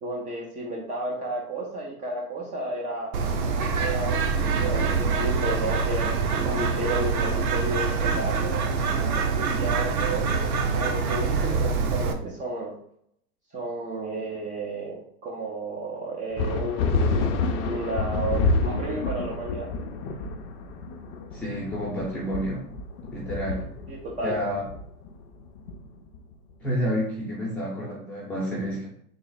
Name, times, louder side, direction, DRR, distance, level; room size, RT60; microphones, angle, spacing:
voice 1, 0.0-3.1 3.8-8.6 9.4-12.7 13.5-19.7 23.9-24.3, right 2 dB, 20° right, -2 dB, 0.5 m, -32 dB
Bird, 3.1-12.1, right 5 dB, 65° right, 0.7 m, -25 dB
sound 1, 16.4-26.3, left 3 dB, 45° left, 0.5 m, -28 dB
voice 2, 21.3-22.6 23.1-23.6 24.2-24.6 26.6-28.9, equal, 5° left, -7 dB, 0.9 m, -29 dB
3.8 x 2.1 x 4.0 m, 0.68 s
hypercardioid pair, 115°, 46 cm